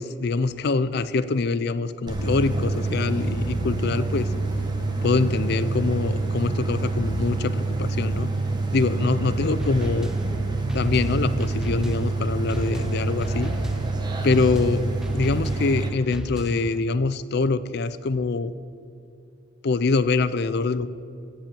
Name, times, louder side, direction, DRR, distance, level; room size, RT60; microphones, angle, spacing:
voice 1, 0.0-4.3 5.0-8.3 8.7-10.1 10.7-13.5 14.2-14.9 15.1-18.5 19.6-20.9, left 3 dB, 55° left, 14 dB, 0.5 m, -24 dB
sound 1, 2.1-15.9, right 3 dB, 20° right, 1.2 m, -27 dB
sound 2, 9.6-16.8, equal, 5° right, 0.3 m, -36 dB
16.0 x 5.3 x 8.9 m, 2.5 s
head